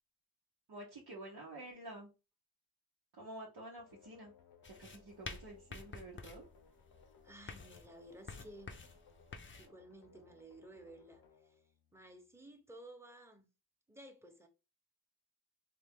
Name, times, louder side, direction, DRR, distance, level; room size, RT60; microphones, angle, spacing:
voice 1, 0.7-2.1 3.1-4.3 4.8-6.4, right 1 dB, 85° right, 0.8 m, -49 dB
sound 1, 3.8-12.5, left 5 dB, 85° left, 0.8 m, -64 dB
sound 2, 4.6-9.7, left 4 dB, 30° left, 0.5 m, -50 dB
voice 2, 7.2-8.9 9.6-11.6 11.9-13.5 13.9-14.5, right 1 dB, 5° right, 0.8 m, -55 dB
3.3 x 2.3 x 3.5 m
cardioid pair, 45°, 38 cm